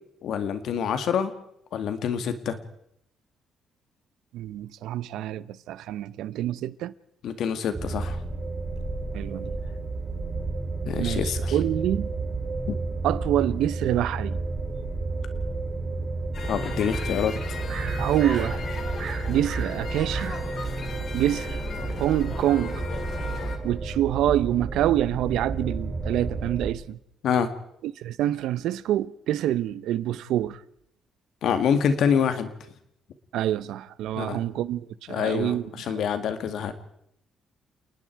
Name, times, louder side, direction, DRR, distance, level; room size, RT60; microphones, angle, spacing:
voice 1, 0.2-1.3 1.7-2.6 7.2-8.2 10.9-11.5 16.5-17.6 27.2-27.5 31.4-32.5 34.2-34.4 35.1-36.7, left 7 dB, 65° left, 2.1 m, -26 dB
voice 2, 4.3-6.9 9.1-9.5 11.0-12.1 13.0-14.4 18.0-18.6 19.3-20.4 21.1-21.6 22.0-22.8 23.6-27.0 27.8-30.6 33.3-36.1, right 12 dB, 85° right, 0.8 m, -26 dB
sound 1, 7.7-26.7, right 3 dB, 30° right, 7.5 m, -31 dB
sound 2, 16.3-23.6, left 5 dB, 45° left, 3.1 m, -36 dB
sound 3, 16.6-18.5 19.0-20.4 20.8-20.9, right 8 dB, 60° right, 2.5 m, -38 dB
29.0 x 19.5 x 4.7 m
cardioid pair, 135°, 0 cm